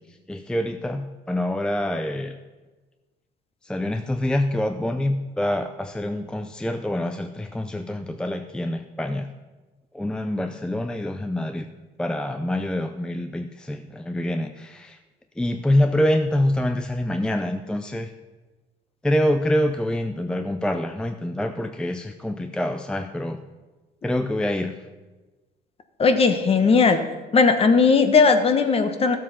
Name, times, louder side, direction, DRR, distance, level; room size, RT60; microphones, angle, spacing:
voice 1, 0.0-2.3 3.6-9.3 9.9-11.7 12.0-15.0 15.4-18.1 19.0-23.4 24.0-24.9, left 1 dB, 5° left, 7 dB, 0.5 m, -26 dB
voice 2, 26.0-27.0 27.3-29.2, left 4 dB, 35° left, 8 dB, 1.2 m, -17 dB
13.5 x 7.5 x 5.8 m, 1.2 s
cardioid pair, 110°, 17 cm